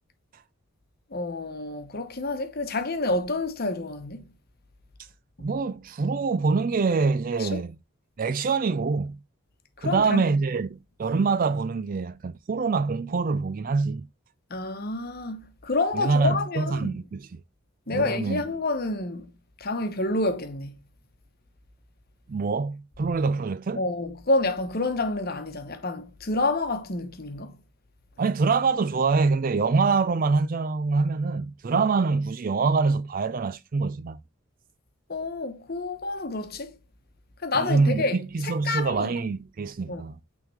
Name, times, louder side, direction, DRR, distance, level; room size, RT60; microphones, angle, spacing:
voice 1, 1.1-4.3 7.4-7.6 9.8-10.2 14.5-16.9 17.9-19.3 19.6-20.8 23.7-27.6 35.1-36.7 37.4-39.1 39.9-40.0, left 2 dB, 45° left, 1.0 m, -28 dB
voice 2, 5.4-7.8 8.2-9.2 9.8-14.1 15.9-17.3 17.9-18.4 22.3-23.8 28.2-34.2 37.6-40.2, right 4 dB, 40° right, 0.3 m, -25 dB
9.1 x 3.7 x 3.4 m
head